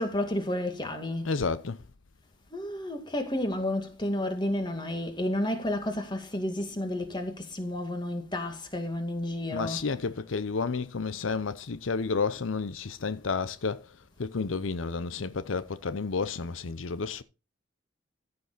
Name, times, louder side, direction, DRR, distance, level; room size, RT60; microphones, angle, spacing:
voice 1, 0.0-1.3 2.5-9.9, left 1 dB, 25° left, 2.2 m, -31 dB
voice 2, 1.2-1.8 9.5-13.9 14.2-17.2, left 4 dB, 90° left, 0.7 m, -31 dB
14.5 x 6.8 x 4.1 m
head